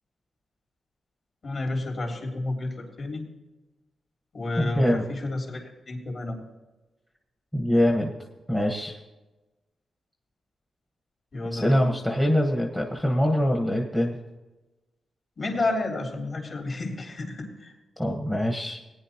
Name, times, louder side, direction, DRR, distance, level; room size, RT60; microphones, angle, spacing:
voice 1, 1.4-3.2 4.3-6.4 11.3-11.9 15.4-17.7, left 2 dB, 45° left, 0 dB, 3.2 m, -31 dB
voice 2, 4.6-5.0 7.5-8.1 8.5-8.9 11.5-14.2 18.0-18.8, equal, 5° left, 0 dB, 1.2 m, -24 dB
19.0 x 10.0 x 2.9 m, 1.1 s
wide cardioid pair, 145°, 0 cm